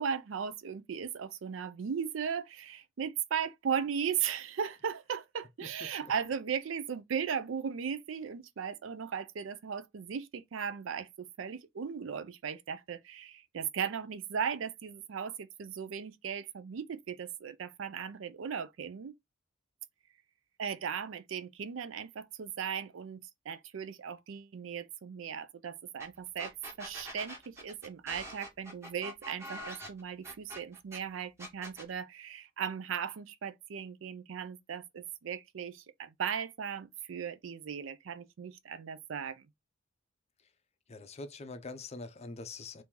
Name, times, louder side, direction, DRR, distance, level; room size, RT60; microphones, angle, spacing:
voice 1, 0.0-19.1 20.6-39.5, right 7 dB, 70° right, 0.4 m, -37 dB
sound 1, 26.0-26.1 26.4-31.0 31.4-31.9, equal, 15° right, 1.1 m, -44 dB
voice 2, 40.9-42.8, left 3 dB, 35° left, 0.5 m, -44 dB
2.9 x 2.6 x 3.6 m
head